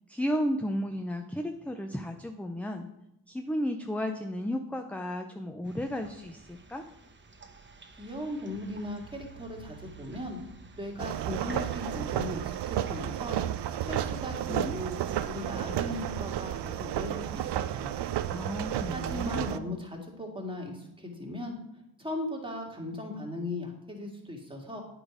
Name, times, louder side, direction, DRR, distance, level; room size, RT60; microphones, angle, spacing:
voice 1, 0.1-2.9 3.3-6.8 14.5-14.8 18.3-19.8, equal, 5° left, 5 dB, 0.5 m, -33 dB
sound 1, 5.6-13.3, right 4 dB, 30° right, 0.9 m, -51 dB
voice 2, 8.0-10.4 10.8-13.4 13.8-17.9 18.9-21.6 22.0-24.8, left 1 dB, 10° right, 0 dB, 1.9 m, -38 dB
sound 2, 11.0-19.6, right 11 dB, 80° right, 0.5 m, -32 dB
8.6 x 5.0 x 4.9 m, 0.84 s
cardioid pair, 70°, 40 cm